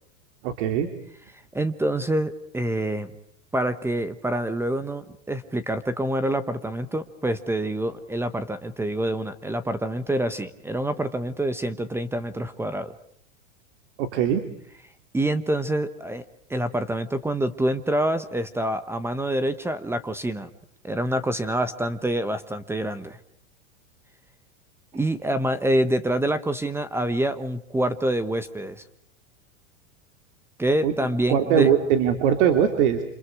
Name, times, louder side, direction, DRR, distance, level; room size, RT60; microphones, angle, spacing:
voice 1, 0.4-0.9 14.0-14.4 30.8-30.9 31.3-33.0, right 8 dB, 55° right, 6 dB, 3.0 m, -21 dB
voice 2, 1.5-3.1 3.5-12.9 15.1-16.2 16.5-20.5 20.8-23.2 24.9-28.8 30.6-31.7, right 1 dB, 5° right, 13 dB, 1.0 m, -26 dB
29.0 x 27.0 x 4.8 m, 0.69 s
supercardioid pair, 145°, 40 cm